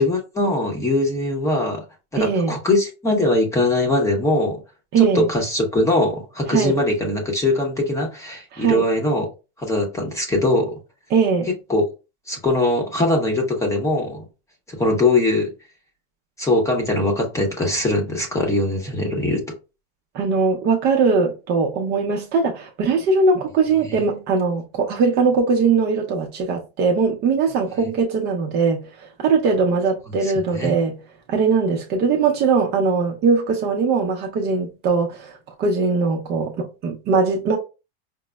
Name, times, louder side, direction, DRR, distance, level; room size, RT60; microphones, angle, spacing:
voice 1, 0.0-1.8 2.1-4.6 5.0-9.3 9.6-10.7 11.7-11.8 12.3-14.3 14.7-15.5 16.4-19.4 23.8-24.0 30.2-30.8, left 2 dB, 10° left, 0.8 m, -21 dB
voice 2, 2.2-2.5 4.9-5.3 6.5-6.7 8.5-8.8 11.1-11.5 20.1-31.0 31.3-37.6, right 4 dB, 35° right, 0.6 m, -20 dB
5.1 x 2.0 x 2.2 m
supercardioid pair, 140°, 30 cm